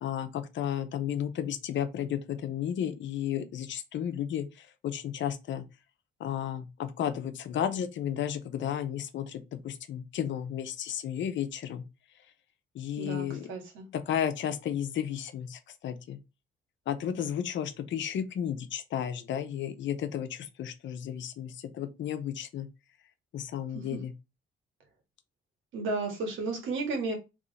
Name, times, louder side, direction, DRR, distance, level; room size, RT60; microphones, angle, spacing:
voice 1, 0.0-5.6 6.2-11.8 12.7-13.5 13.9-16.2 16.9-22.7 23.3-24.1, left 9 dB, 70° left, 0.8 m, -33 dB
voice 2, 13.0-13.9 23.7-23.8 25.7-27.2, right 3 dB, 75° right, 1.9 m, -33 dB
3.6 x 3.2 x 4.1 m
cardioid pair, 90°, 20 cm